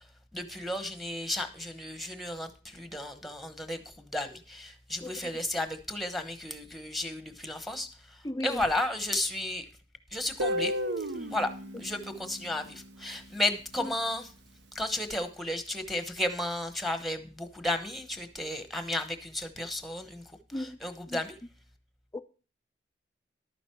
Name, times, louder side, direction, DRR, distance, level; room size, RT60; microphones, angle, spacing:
voice 1, 0.3-7.9 8.4-9.6 10.1-10.7 11.3-11.5 11.8-14.3 14.7-20.2 20.5-21.3, left 1 dB, ahead, 1.0 m, -33 dB
voice 2, 5.0-5.3 8.2-8.6 13.8-13.9 20.5-20.8 21.1-21.2 22.1-22.2, left 1 dB, 20° left, 0.5 m, -36 dB
Guitar, 10.4-13.3, equal, 75° right, 0.8 m, -34 dB
11.5 x 9.2 x 4.6 m
head